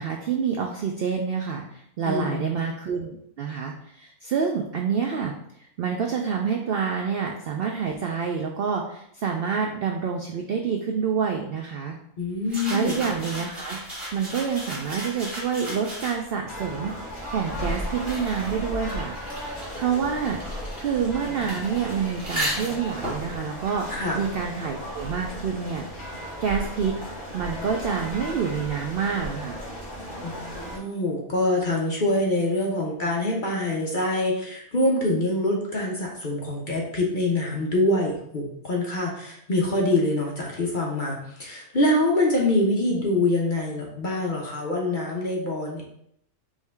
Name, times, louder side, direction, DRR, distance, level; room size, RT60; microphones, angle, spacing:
voice 1, 0.0-5.3 5.8-12.0 12.7-13.8 14.1-16.9 17.3-19.1 19.4-20.4 20.8-23.9 24.1-26.9 27.3-29.6, right 6 dB, 85° right, 2 dB, 0.5 m, -27 dB
voice 2, 2.0-2.5 12.2-13.0 23.9-24.2 30.2-45.9, left 1 dB, 45° left, -2 dB, 0.7 m, -25 dB
sound 1, 12.5-16.5 17.2-24.7, equal, 20° right, 1.3 m, -36 dB
sound 2, 16.5-30.8, equal, 25° left, 1.8 m, -35 dB
4.8 x 2.7 x 3.4 m, 0.72 s
omnidirectional pair, 1.5 m